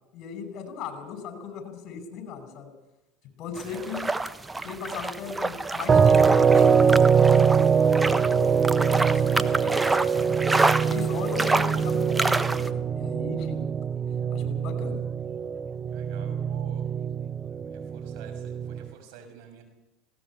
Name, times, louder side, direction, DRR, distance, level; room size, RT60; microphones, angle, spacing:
voice 1, 0.1-2.7 3.4-4.1 4.6-10.4 10.8-13.7 14.3-15.0, left 6 dB, 55° left, 9 dB, 5.5 m, -37 dB
sound 1, 3.6-12.7, right 2 dB, 15° right, 1.2 m, -28 dB
voice 2, 3.6-3.9 15.9-16.9 17.4-19.6, right 6 dB, 70° right, 6 dB, 6.2 m, -48 dB
sound 2, 5.9-18.9, right 6 dB, 30° right, 0.6 m, -23 dB
20.0 x 17.5 x 8.6 m, 0.99 s
supercardioid pair, 95°, 0 cm